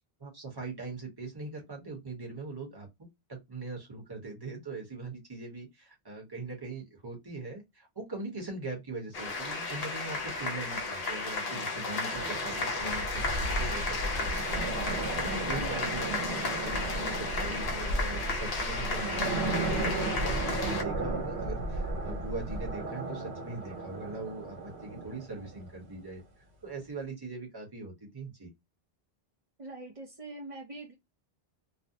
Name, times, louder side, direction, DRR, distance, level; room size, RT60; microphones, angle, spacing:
voice 1, 0.2-2.9 3.3-26.2 26.6-28.5, right 3 dB, 25° right, 0.9 m, -41 dB
sound 1, 9.1-20.8, left 3 dB, 50° left, 0.6 m, -33 dB
sound 2, 12.1-25.9, right 3 dB, 85° right, 1.0 m, -37 dB
Wind, 12.8-22.8, right 1 dB, 90° left, 0.8 m, -37 dB
voice 2, 15.6-15.9 29.6-30.9, right 2 dB, 45° right, 0.5 m, -43 dB
2.5 x 2.0 x 2.6 m
omnidirectional pair, 1.1 m